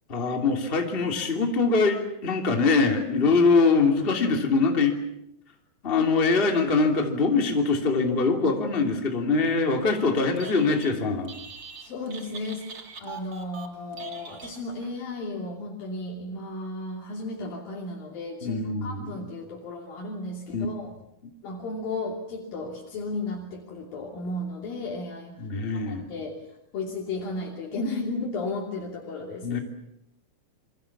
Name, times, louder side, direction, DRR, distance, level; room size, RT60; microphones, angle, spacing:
voice 1, 0.1-5.0 5.8-11.4 18.4-19.2 20.5-20.7 25.4-26.1 29.4-29.6, left 4 dB, 15° left, 3 dB, 2.7 m, -23 dB
Telephone, 10.2-11.0 11.2-14.9, right 5 dB, 40° right, 2.1 m, -42 dB
voice 2, 11.8-20.9 21.4-29.6, left 2 dB, 75° left, -1 dB, 4.6 m, -34 dB
27.5 x 24.5 x 7.3 m, 0.81 s
omnidirectional pair, 4.1 m